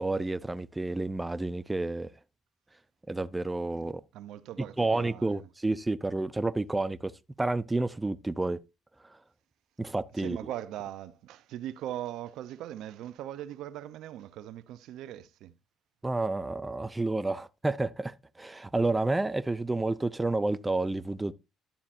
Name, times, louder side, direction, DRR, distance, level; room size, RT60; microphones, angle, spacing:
voice 1, 0.0-2.1 3.1-4.0 4.8-7.1 7.4-8.6 9.8-10.4 16.0-21.3, right 2 dB, 15° right, 0.5 m, -30 dB
voice 2, 4.1-5.5 10.2-15.5, right 12 dB, 75° right, 0.6 m, -40 dB
11.5 x 7.1 x 2.5 m
supercardioid pair, 80°, 0 cm